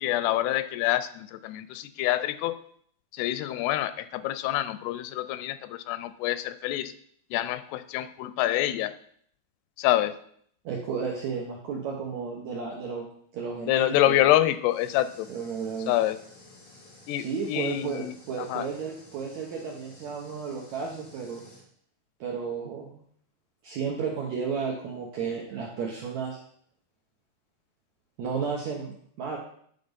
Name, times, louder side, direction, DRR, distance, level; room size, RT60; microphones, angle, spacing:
voice 1, 0.0-2.6 3.1-6.9 7.3-8.9 9.8-10.2 13.7-15.3 15.9-16.2 17.1-18.7, left 14 dB, 85° left, 13 dB, 2.6 m, -26 dB
voice 2, 10.7-13.1 13.3-14.3 15.3-15.9 17.2-21.4 22.2-23.0 23.6-26.4 28.2-29.4, right 5 dB, 75° right, -1 dB, 1.7 m, -33 dB
sound 1, 14.7-21.7, left 2 dB, 40° left, 1.1 m, -53 dB
10.5 x 4.2 x 5.2 m, 0.63 s
omnidirectional pair, 4.6 m